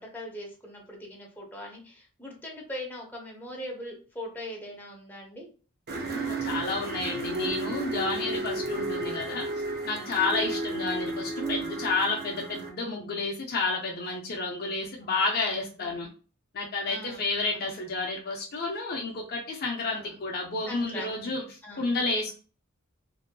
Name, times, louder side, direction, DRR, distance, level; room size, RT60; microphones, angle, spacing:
voice 1, 0.0-5.5 10.1-10.3 15.8-16.0 16.8-17.7 19.9-20.1 20.7-21.1 21.6-21.9, left 1 dB, 10° left, -1 dB, 0.7 m, -41 dB
sound 1, 5.9-12.7, right 2 dB, 45° right, 0.5 m, -33 dB
voice 2, 6.1-16.1 16.5-22.3, left 3 dB, 45° left, 0 dB, 0.5 m, -31 dB
2.6 x 2.5 x 2.2 m, 0.38 s
head